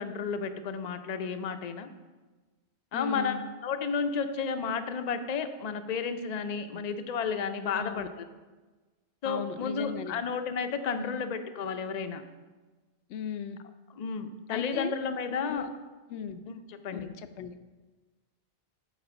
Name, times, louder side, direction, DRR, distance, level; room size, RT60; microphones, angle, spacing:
voice 1, 0.0-1.9 2.9-8.2 9.2-12.2 14.0-15.7 16.5-17.1, left 5 dB, 45° left, 9 dB, 0.6 m, -32 dB
voice 2, 2.9-3.4 6.7-6.8 7.7-8.1 9.2-10.2 10.9-11.2 13.1-13.6 14.5-14.9 15.5-15.7 16.1-16.4 16.9-17.6, left 8 dB, 80° left, 11 dB, 0.9 m, -37 dB
8.6 x 4.9 x 6.9 m, 1.3 s
omnidirectional pair, 1.2 m